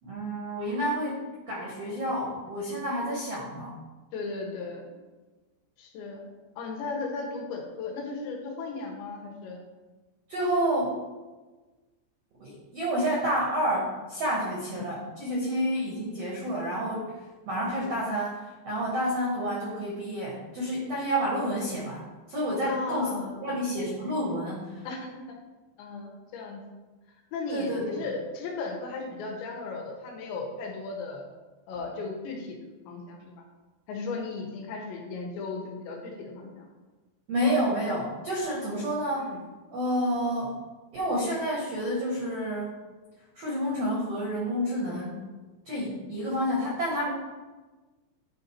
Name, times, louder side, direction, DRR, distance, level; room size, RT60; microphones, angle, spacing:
voice 1, 0.0-3.7 10.3-11.0 12.4-17.1 17.5-22.0 22.3-23.1 23.4-24.8 27.5-28.1 37.3-39.3 39.7-40.6 40.9-42.7 43.3-45.2 45.6-47.1, equal, 80° right, -4 dB, 1.4 m, -29 dB
voice 2, 4.1-4.9 5.8-6.3 6.6-9.6 14.7-14.9 22.6-23.6 24.8-25.0 25.3-25.4 25.8-26.6 27.3-31.2 31.7-32.6 32.9-33.3 33.9-36.7 39.2-39.4, left 3 dB, 80° left, 1 dB, 3.4 m, -36 dB
10.0 x 3.9 x 4.4 m, 1.2 s
omnidirectional pair, 5.0 m